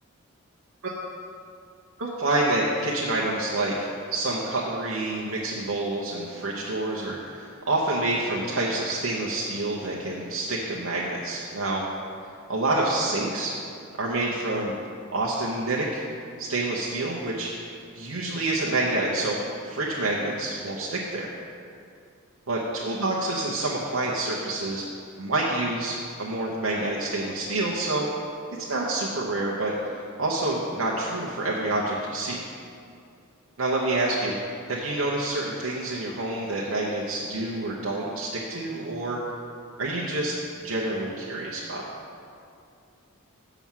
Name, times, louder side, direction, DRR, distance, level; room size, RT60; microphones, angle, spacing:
voice 1, 2.0-11.9 12.5-13.5 14.0-14.7 15.1-16.0 16.4-17.7 17.9-19.4 19.6-21.3 22.5-24.8 25.2-28.1 28.6-29.7 30.2-32.4 33.6-34.3 34.7-39.2 39.8-40.3 40.6-41.8, right 2 dB, 80° right, -5 dB, 0.9 m, -27 dB
7.0 x 6.0 x 7.2 m, 2.5 s
head